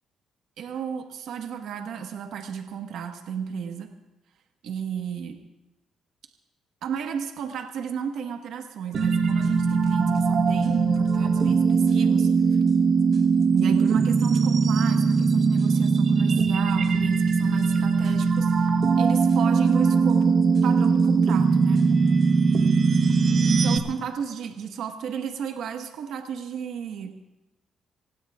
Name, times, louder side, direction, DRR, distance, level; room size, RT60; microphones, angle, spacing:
voice 1, 0.6-3.9 4.6-5.4 6.8-12.6 13.5-18.7 19.0-20.3 20.6-21.8 23.4-27.1, right 7 dB, 80° right, 4 dB, 1.4 m, -33 dB
sound 1, 8.9-23.8, right 5 dB, 55° right, 1.2 m, -21 dB
27.5 x 16.5 x 2.5 m, 0.98 s
cardioid pair, 90°, 0 cm